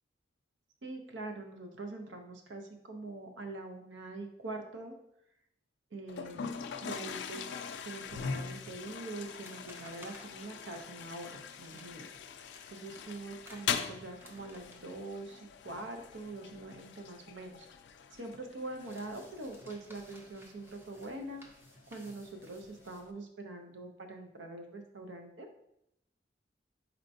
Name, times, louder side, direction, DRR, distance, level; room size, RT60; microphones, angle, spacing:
voice 1, 0.8-5.0 5.9-7.6 7.8-12.1 12.7-17.7 18.2-21.4 21.9-25.5, right 2 dB, 80° right, 4 dB, 0.6 m, -44 dB
Toilet flush, 6.1-23.1, left 6 dB, 70° left, 0.3 m, -43 dB
sound 1, 9.2-18.0 18.3-23.0, equal, 10° right, 0.5 m, -59 dB
4.4 x 4.3 x 2.6 m, 0.80 s
head